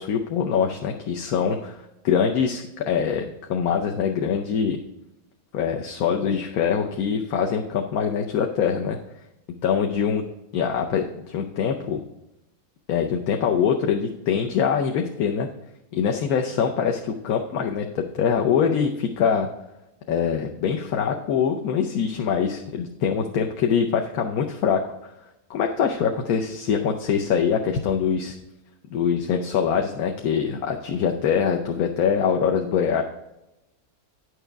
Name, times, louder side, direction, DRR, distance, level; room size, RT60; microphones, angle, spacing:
voice 1, 0.0-4.8 5.5-9.0 9.6-10.2 10.5-12.0 12.9-15.5 15.9-19.5 20.1-24.8 25.5-28.3 28.9-33.0, left 7 dB, 75° left, 2 dB, 1.2 m, -24 dB
9.9 x 6.4 x 3.4 m, 0.95 s
omnidirectional pair, 1.6 m